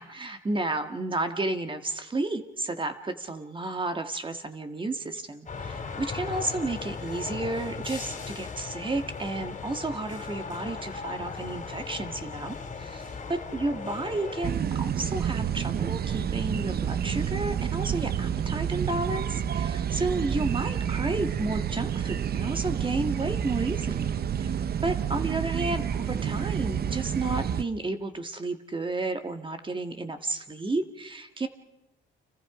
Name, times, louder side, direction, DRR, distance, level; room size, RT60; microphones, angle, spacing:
voice 1, 0.0-31.5, right 2 dB, 25° right, 7 dB, 1.8 m, -32 dB
sound 1, 5.5-14.5, left 5 dB, 40° left, 3.2 m, -37 dB
sound 2, 14.4-27.6, right 8 dB, 50° right, 0.9 m, -29 dB
30.0 x 26.5 x 5.0 m, 0.93 s
cardioid pair, 90°, 20 cm